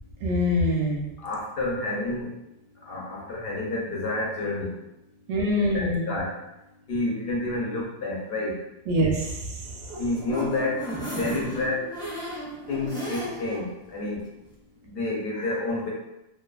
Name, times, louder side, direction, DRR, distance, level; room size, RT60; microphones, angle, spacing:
voice 1, 0.2-1.0 5.3-6.0 8.9-9.3, left 1 dB, 80° right, -1 dB, 0.9 m, -23 dB
voice 2, 1.2-2.3 2.9-4.8 5.5-6.4 6.9-8.6 10.0-11.9 12.7-13.7 13.9-14.2 14.9-15.9, left 2 dB, 60° left, -3 dB, 0.8 m, -29 dB
sound 1, 9.6-13.6 14.0-14.1 14.4-14.5, equal, 5° left, 0.3 m, -35 dB
2.6 x 2.3 x 2.3 m, 0.91 s
omnidirectional pair, 1.2 m